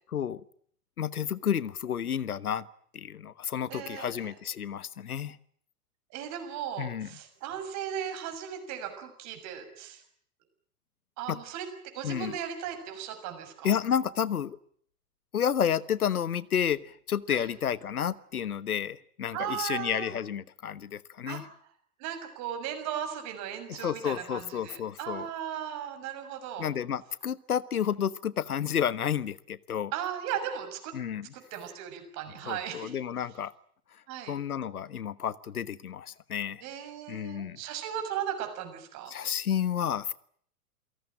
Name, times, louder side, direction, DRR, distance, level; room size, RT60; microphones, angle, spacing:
voice 1, 0.1-0.4 1.0-2.6 2.9-5.4 6.8-7.1 11.3-11.4 12.0-12.4 13.6-14.6 15.3-21.4 23.7-25.3 26.6-29.9 30.9-31.3 32.4-33.5 34.3-36.6 37.1-37.6 39.1-40.1, left 9 dB, 70° left, 18 dB, 1.3 m, -31 dB
voice 2, 3.7-4.3 6.1-10.0 11.2-11.7 11.9-13.7 17.3-17.5 19.3-20.1 21.3-21.4 22.0-26.7 29.9-30.9 31.3-33.0 34.1-34.3 36.6-39.1, right 9 dB, 35° right, 7 dB, 6.6 m, -37 dB
28.0 x 18.5 x 8.9 m, 0.63 s
figure-of-eight pair, 100°, 46 cm